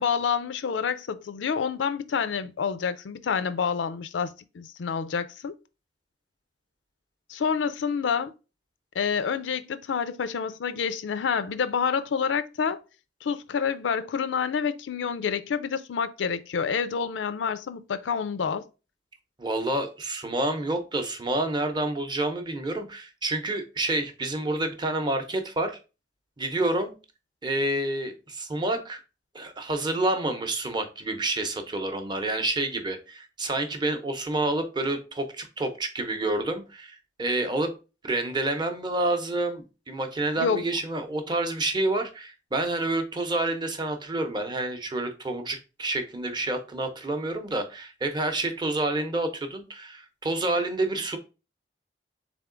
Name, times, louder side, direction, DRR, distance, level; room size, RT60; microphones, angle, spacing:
voice 1, 0.0-5.5 7.3-8.3 8.9-12.8 13.2-18.7 40.4-40.6, left 6 dB, 90° left, 0.4 m, -28 dB
voice 2, 19.4-25.8 26.4-26.9 27.4-29.0 29.3-37.7 38.0-51.2, right 2 dB, 25° right, 0.7 m, -28 dB
3.6 x 3.5 x 3.7 m
head